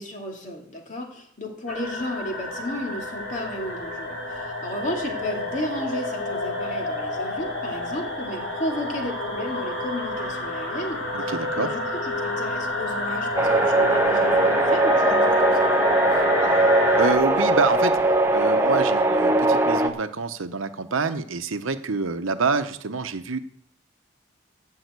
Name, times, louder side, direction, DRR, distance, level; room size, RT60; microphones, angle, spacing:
voice 1, 0.0-11.0 11.3-16.2, equal, 40° left, 1 dB, 2.2 m, -33 dB
sound 1, 1.7-17.1, left 2 dB, 60° left, 2.8 m, -29 dB
voice 2, 11.1-11.7 16.7-18.0 18.3-23.4, right 4 dB, 85° right, 10 dB, 0.8 m, -26 dB
sound 2, 13.3-19.9, right 2 dB, 10° right, 0.8 m, -20 dB
12.5 x 5.7 x 8.1 m, 0.67 s
head